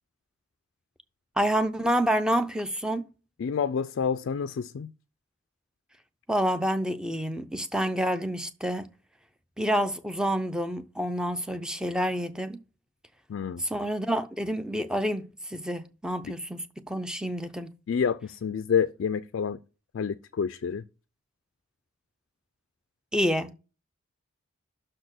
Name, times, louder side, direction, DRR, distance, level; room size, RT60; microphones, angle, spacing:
voice 1, 1.4-3.1 6.3-8.9 9.6-12.6 13.6-17.7 23.1-23.6, equal, 5° right, 0.5 m, -28 dB
voice 2, 3.4-4.9 13.3-13.6 16.2-16.3 17.9-19.6 19.9-20.8, left 7 dB, 60° left, 0.3 m, -28 dB
6.3 x 4.3 x 6.4 m
head